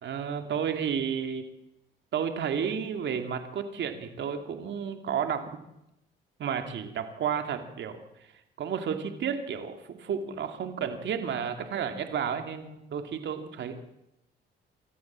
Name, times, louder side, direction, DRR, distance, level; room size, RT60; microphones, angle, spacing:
voice 1, 0.0-1.4 2.1-5.4 6.4-8.3 8.6-13.8, right 7 dB, 65° right, 6 dB, 2.6 m, -32 dB
25.5 x 14.0 x 7.5 m, 0.86 s
cardioid pair, 90°, 20 cm